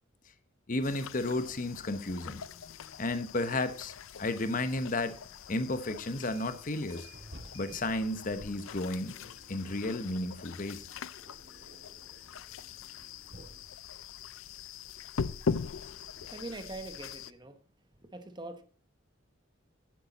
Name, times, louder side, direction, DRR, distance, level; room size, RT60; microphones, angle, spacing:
voice 1, 0.7-2.4 3.0-5.2 5.5-7.1 7.5-9.1 9.5-10.9, left 2 dB, 40° left, 0.9 m, -33 dB
sound 1, 0.8-17.3, left 5 dB, 90° left, 0.5 m, -42 dB
sound 2, 6.1-6.6 6.9-15.3, right 1 dB, 60° right, 2.5 m, -55 dB
voice 2, 15.7-17.6 18.0-18.6, right 2 dB, 20° right, 1.0 m, -44 dB
11.0 x 9.4 x 4.1 m
head